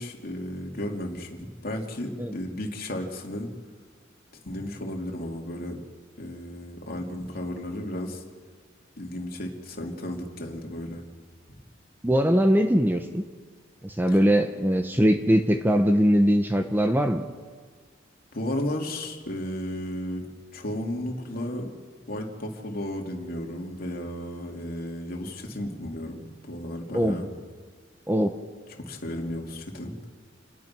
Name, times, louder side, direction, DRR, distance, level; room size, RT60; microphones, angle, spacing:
voice 1, 0.0-3.5 4.4-5.8 6.2-8.2 9.0-11.0 14.1-14.2 18.3-20.3 20.5-21.7 22.1-27.3 28.8-29.9, left 1 dB, 50° left, 1 dB, 3.0 m, -34 dB
voice 2, 12.0-13.2 13.8-17.2 26.9-27.2 28.1-28.3, equal, 10° right, 6 dB, 1.0 m, -21 dB
28.0 x 19.5 x 6.1 m, 1.5 s
head